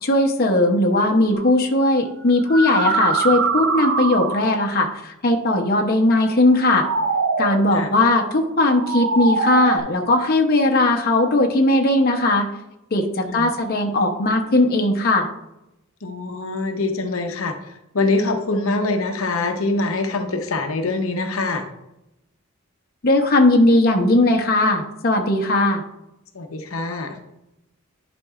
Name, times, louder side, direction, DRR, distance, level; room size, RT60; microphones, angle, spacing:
voice 1, 0.0-6.9 7.4-12.5 12.9-15.3 23.0-25.8, left 2 dB, 50° left, 2 dB, 0.8 m, -18 dB
sound 1, 1.3-1.5 2.3-4.6 6.5-7.7 8.6-9.8, right 4 dB, 60° right, 0.7 m, -23 dB
voice 2, 16.0-17.5 17.9-21.6 26.3-27.2, left 3 dB, 80° left, 5 dB, 0.8 m, -24 dB
11.0 x 5.2 x 2.4 m, 0.89 s
head